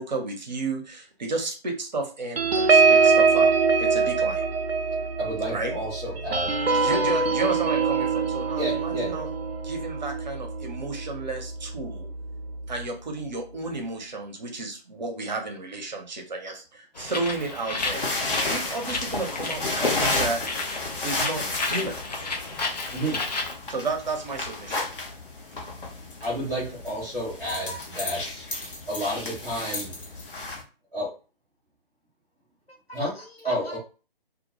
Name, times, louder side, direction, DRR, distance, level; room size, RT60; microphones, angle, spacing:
voice 1, 0.0-3.5 3.8-4.4 5.5-5.8 6.6-9.3 9.6-12.1 12.7-18.1 18.5-20.4 21.0-22.0 23.7-24.9, right 3 dB, 45° right, 3 dB, 0.7 m, -32 dB
sound 1, 2.4-11.3 11.7-11.9 12.2-12.5, right 4 dB, 85° right, 0.5 m, -23 dB
voice 2, 5.2-6.5 8.5-9.1 22.9-23.2 26.2-28.5 28.9-29.9 30.9-31.1 32.9-33.1 33.4-33.8, equal, 5° right, -13 dB, 0.5 m, -30 dB
Bird, 17.0-23.6, left 3 dB, 45° left, 0.5 m, -33 dB
sound 2, 17.8-30.6, left 2 dB, 60° left, 0.8 m, -32 dB
voice 3, 27.4-27.8 28.1-28.3 32.7-33.8, left 1 dB, 85° left, 1 dB, 1.0 m, -39 dB
2.2 x 2.1 x 2.9 m, 0.34 s
figure-of-eight pair, 145°, 30 cm